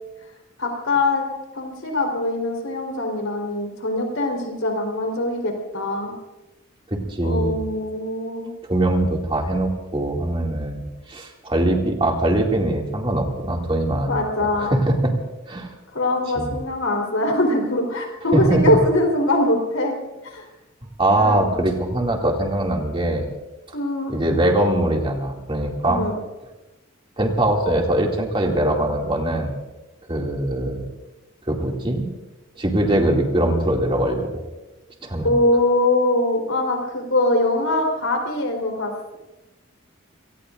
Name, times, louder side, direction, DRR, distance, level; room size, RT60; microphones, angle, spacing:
voice 1, 0.6-1.3 1.5-6.1 7.2-8.5 14.1-14.7 15.9-20.0 20.3-20.5 21.1-21.5 23.7-24.1 25.8-26.2 35.2-39.2, left 2 dB, 85° left, 2 dB, 4.0 m, -22 dB
voice 2, 6.9-7.6 8.6-14.2 14.6-15.2 15.5-15.7 16.4-16.5 18.3-18.8 21.0-23.2 24.1-26.0 27.2-29.5 30.1-30.9 31.5-32.0 32.6-34.3 35.0-35.4, right 1 dB, 25° right, 1 dB, 2.4 m, -22 dB
30.0 x 19.0 x 2.6 m, 1.1 s
head